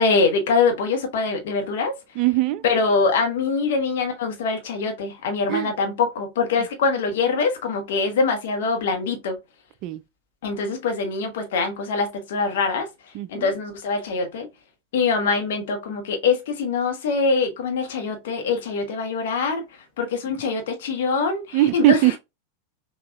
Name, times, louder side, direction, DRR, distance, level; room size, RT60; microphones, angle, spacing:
voice 1, 0.0-1.9 2.6-9.3 10.4-12.9 13.3-14.5 14.9-19.6 20.0-22.1, left 4 dB, 55° left, 1.3 m, -23 dB
voice 2, 2.2-2.6 5.5-5.7 9.8-10.0 13.1-13.5 21.5-22.2, right 16 dB, 40° right, 0.3 m, -20 dB
6.0 x 2.9 x 2.3 m
figure-of-eight pair, 90°, 0 cm